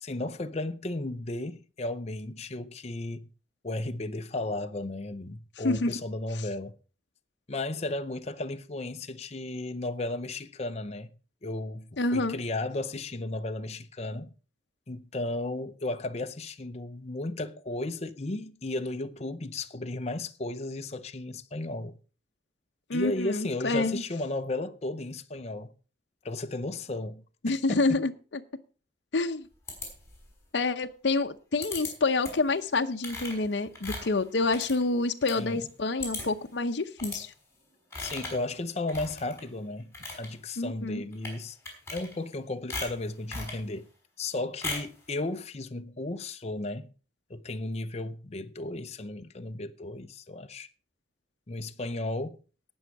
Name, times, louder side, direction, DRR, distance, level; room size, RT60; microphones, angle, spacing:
voice 1, 0.0-3.3 3.6-6.7 7.5-11.1 11.4-14.3 14.9-22.0 22.9-25.7 26.2-28.0 35.4-35.7 38.0-41.6 41.9-43.8 44.2-46.9 47.3-50.7 51.5-52.4, left 2 dB, 35° left, 0.7 m, -34 dB
voice 2, 12.0-12.4 22.9-24.0 27.4-28.1 29.1-29.5 30.5-37.3 40.6-41.0, left 3 dB, 70° left, 0.7 m, -28 dB
sound 1, 29.7-30.4 31.6-31.9 32.2-32.5 33.0-35.4 35.7-35.8 36.0-36.5 37.0-37.2 37.9-38.4 38.9-39.4 39.8-40.3 41.1-41.4 41.6-42.4 42.7-43.6 44.6-45.0, left 3 dB, 15° left, 5.1 m, -38 dB
18.5 x 6.3 x 4.6 m
head